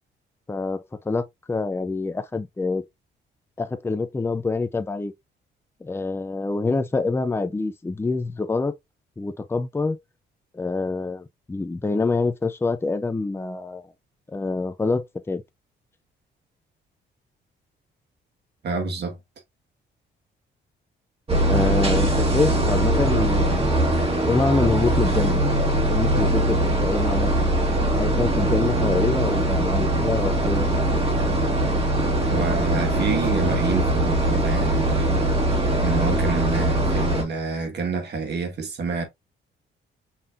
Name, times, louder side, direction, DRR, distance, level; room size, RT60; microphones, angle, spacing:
voice 1, 0.5-2.8 3.6-5.1 5.8-8.7 9.2-10.0 10.5-13.9 14.3-15.4 21.4-23.9 24.3-25.4 25.9-27.5 28.0-30.7, left 3 dB, 10° left, 0.5 m, -26 dB
voice 2, 18.6-19.2 32.3-35.5 35.8-39.0, right 4 dB, 60° right, 2.0 m, -28 dB
sound 1, 21.3-37.2, right 1 dB, 30° right, 2.0 m, -21 dB
5.6 x 3.3 x 2.7 m
cardioid pair, 90°, 20 cm